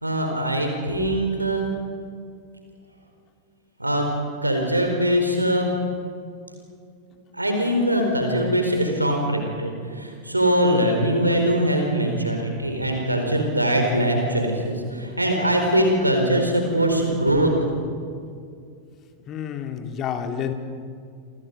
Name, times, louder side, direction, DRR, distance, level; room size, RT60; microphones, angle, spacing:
voice 1, 0.0-1.7 3.8-4.1 4.4-5.7 7.1-17.7, right 1 dB, 85° right, 3 dB, 4.6 m, -22 dB
voice 2, 19.3-20.5, left 8 dB, 30° left, 6 dB, 2.4 m, -29 dB
29.5 x 24.5 x 5.4 m, 2.3 s
figure-of-eight pair, 90°, 0 cm